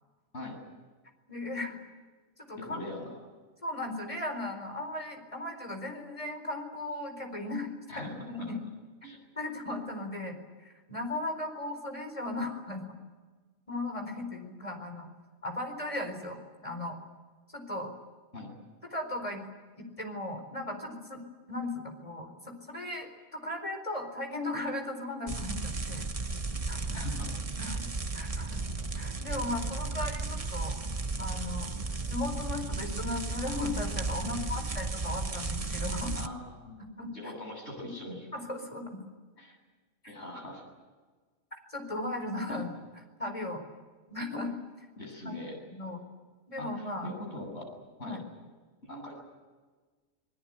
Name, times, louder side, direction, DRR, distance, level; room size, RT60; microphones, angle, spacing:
voice 1, 1.3-1.8 2.5-2.8 3.6-7.7 8.0-8.6 9.4-13.0 13.7-15.1 15.4-16.4 16.6-17.0 17.5-17.9 18.9-19.4 19.8-21.2 21.5-26.1 26.7-27.0 27.6-28.6 28.9-30.8 31.2-31.7 32.1-36.2 37.0-37.3 38.3-39.0 40.0-40.1 41.5-42.7 43.2-43.6 44.1-44.5 45.2-45.4 45.7-46.0 46.5-47.1 48.0-48.2, left 2 dB, 25° left, 5 dB, 4.6 m, -37 dB
voice 2, 2.6-3.2 7.9-8.1 8.4-8.5 9.0-9.2 18.3-18.5 26.9-27.3 27.6-27.7 34.2-34.7 36.2-36.8 37.1-38.3 39.4-39.6 40.1-40.6 42.5-42.6 45.0-45.9 46.6-47.7 48.0-48.2 48.8-49.2, left 1 dB, 60° left, 1 dB, 8.5 m, -42 dB
sound 1, 25.3-36.3, right 3 dB, 30° right, 1.1 m, -34 dB
27.5 x 21.0 x 9.0 m, 1.4 s
omnidirectional pair, 1.3 m